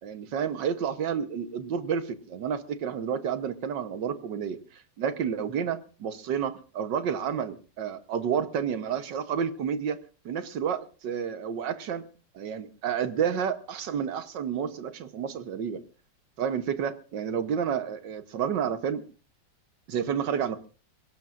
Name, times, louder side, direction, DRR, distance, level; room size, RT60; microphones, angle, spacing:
voice 1, 0.0-4.6 5.0-10.0 10.3-12.0 12.4-15.8 16.4-19.0 19.9-20.7, right 7 dB, 80° right, 11 dB, 1.8 m, -30 dB
23.5 x 18.0 x 2.5 m, 0.37 s
omnidirectional pair, 1.9 m